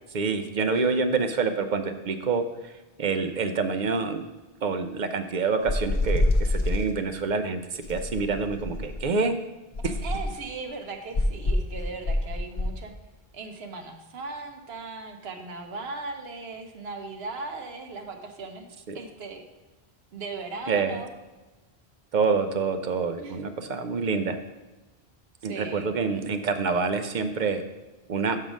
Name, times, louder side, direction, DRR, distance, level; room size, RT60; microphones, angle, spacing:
voice 1, 0.1-2.7 3.0-4.2 4.6-9.3 9.8-9.9 18.9-19.0 20.7-21.0 22.1-24.4 25.4-27.6 28.1-28.4, right 4 dB, 55° right, 8 dB, 0.6 m, -27 dB
sound 1, 5.7-6.9 7.8-9.1 9.7-10.4 11.1-12.8, left 1 dB, 40° left, 0.6 m, -26 dB
voice 2, 9.8-12.9 13.3-19.4 20.1-21.1 23.2-23.4 25.5-25.9, right 3 dB, 70° right, 5 dB, 1.0 m, -38 dB
6.1 x 5.7 x 5.1 m, 1.1 s
omnidirectional pair, 1.1 m